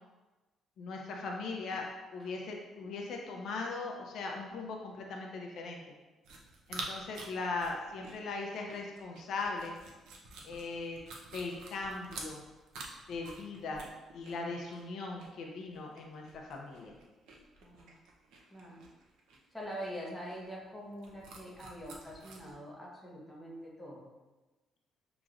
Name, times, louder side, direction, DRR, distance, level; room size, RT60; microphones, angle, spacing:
voice 1, 0.8-1.8 2.1-5.8 6.7-9.7 10.4-11.0 11.3-12.4 13.1-13.8 14.1-16.9, left 3 dB, 60° left, 0 dB, 0.5 m, -39 dB
sound 1, 6.2-22.5, right 3 dB, 85° right, 0.6 m, -49 dB
voice 2, 17.6-17.9 18.5-18.9 19.5-24.1, equal, ahead, -5 dB, 0.8 m, -44 dB
6.1 x 2.9 x 2.4 m, 1.2 s
cardioid pair, 170°, 0 cm